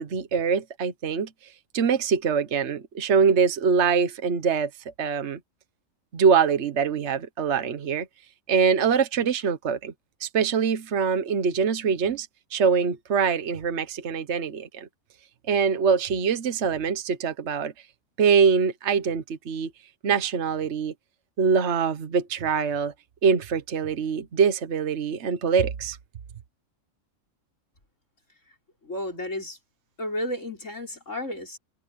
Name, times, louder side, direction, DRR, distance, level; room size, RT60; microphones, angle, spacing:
voice 1, 0.0-5.4 6.1-8.1 8.5-9.9 10.2-14.9 15.5-17.7 18.2-19.7 20.0-20.9 21.4-22.9 23.2-26.0, right 6 dB, 60° right, 1.3 m, -24 dB
voice 2, 28.8-29.6 30.0-31.6, left 1 dB, 65° left, 6.2 m, -32 dB
omnidirectional pair, 1.4 m